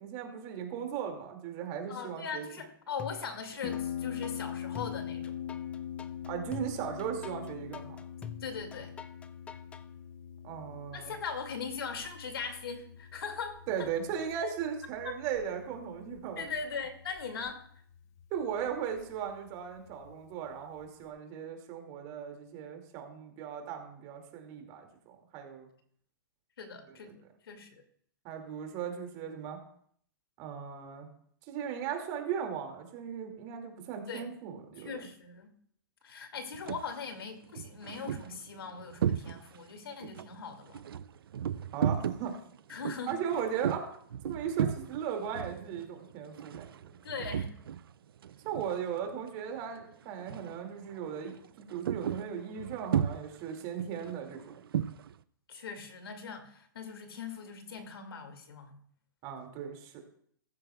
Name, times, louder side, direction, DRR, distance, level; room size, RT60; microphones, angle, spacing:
voice 1, 0.0-2.5 6.3-8.0 10.4-11.1 13.7-16.4 18.3-25.7 27.0-27.1 28.2-29.6 30.4-31.1 31.5-34.9 41.7-42.3 43.1-43.9 44.2-46.9 48.4-54.5 59.2-60.0, right 8 dB, 35° right, 2.3 m, -37 dB
voice 2, 1.9-5.3 8.4-9.0 10.9-13.9 15.0-15.2 16.4-17.6 26.6-27.8 34.1-34.3 34.8-35.5 36.0-40.8 42.7-43.2 47.0-47.5 55.5-58.8, left 5 dB, 90° left, 2.2 m, -40 dB
sound 1, 3.0-3.8 4.2-9.8, left 8 dB, 10° left, 0.4 m, -45 dB
Harp, 3.6-21.1, left 9 dB, 45° left, 1.1 m, -43 dB
sound 2, 36.5-36.9 37.4-39.7 40.0-47.9 48.2-49.3 49.6-49.8 50.2-50.6 50.9-55.1, right 9 dB, 80° right, 0.5 m, -35 dB
14.5 x 13.0 x 2.3 m
hypercardioid pair, 150°, 12 cm